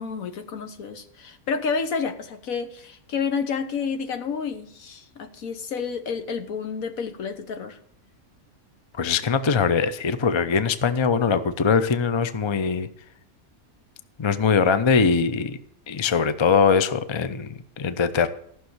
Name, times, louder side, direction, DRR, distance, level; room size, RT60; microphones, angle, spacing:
voice 1, 0.0-7.8, left 5 dB, 70° left, 8 dB, 1.5 m, -30 dB
voice 2, 8.9-12.9 14.2-15.6 15.9-18.3, left 5 dB, 35° left, 12 dB, 0.4 m, -22 dB
14.5 x 6.3 x 7.9 m, 0.65 s
omnidirectional pair, 1.5 m